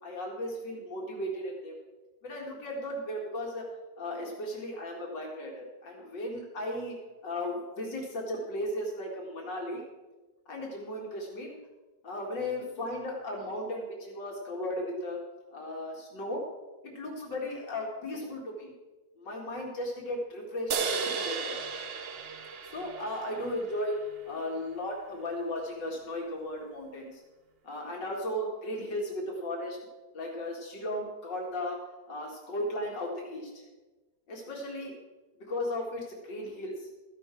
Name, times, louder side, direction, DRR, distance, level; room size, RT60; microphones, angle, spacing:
voice 1, 0.0-1.8 2.2-3.7 4.0-7.0 7.2-9.9 10.5-11.6 12.0-15.2 15.5-16.4 16.8-18.7 19.2-21.6 22.6-24.0 24.3-27.2 27.6-29.8 30.1-31.8 32.1-33.6 34.3-34.9 35.5-36.9, left 1 dB, 80° left, -1 dB, 2.6 m, -36 dB
sound 1, 20.7-24.2, right 5 dB, 50° right, 0.7 m, -35 dB
13.5 x 11.0 x 4.5 m, 1.2 s
omnidirectional pair, 1.9 m